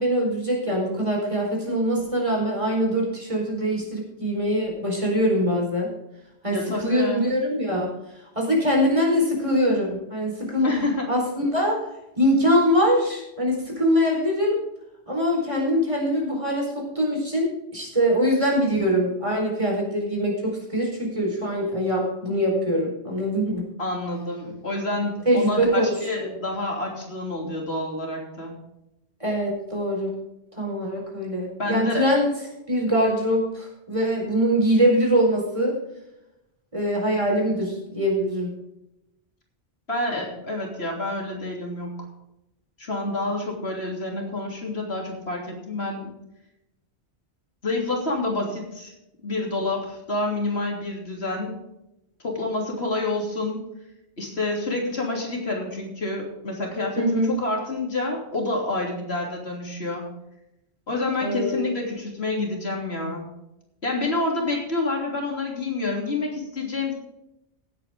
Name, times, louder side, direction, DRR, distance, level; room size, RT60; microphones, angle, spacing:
voice 1, 0.0-5.9 6.4-7.9 8.3-10.7 11.1-11.8 12.2-14.6 15.1-23.6 25.3-26.3 29.2-30.1 30.6-32.3 32.7-35.8 36.7-38.5 57.0-57.3 61.2-61.6, equal, 30° right, -1 dB, 4.6 m, -23 dB
voice 2, 6.5-7.3 10.6-11.1 23.8-28.5 31.6-32.1 39.9-41.9 42.8-46.1 47.6-48.9 49.2-51.6 52.2-53.6 54.2-57.0 57.4-60.1 60.9-63.2 63.8-66.9, left 2 dB, 70° left, 0 dB, 3.4 m, -28 dB
17.5 x 8.7 x 3.7 m, 0.88 s
omnidirectional pair, 1.1 m